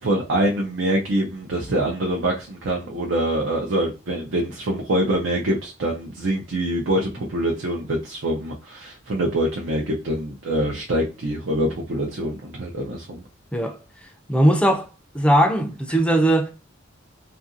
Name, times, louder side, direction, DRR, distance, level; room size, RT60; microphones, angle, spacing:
voice 1, 0.0-13.2, right 1 dB, 75° right, 0.6 m, -25 dB
voice 2, 14.3-14.9 15.1-16.5, right 1 dB, 5° left, 0.4 m, -19 dB
2.7 x 2.5 x 2.5 m
head